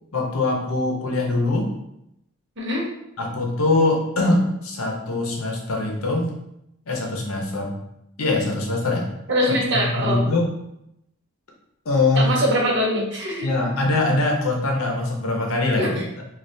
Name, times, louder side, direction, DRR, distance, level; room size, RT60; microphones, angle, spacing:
voice 1, 0.1-1.7 3.2-6.3 6.9-7.7 8.2-9.0 9.5-10.5 11.8-12.3 13.4-16.0, left 2 dB, 85° left, 0 dB, 0.7 m, -22 dB
voice 2, 2.6-2.9 9.3-10.2 12.1-13.5 15.8-16.0, equal, 55° right, -3 dB, 0.8 m, -22 dB
3.3 x 2.3 x 2.6 m, 0.81 s
head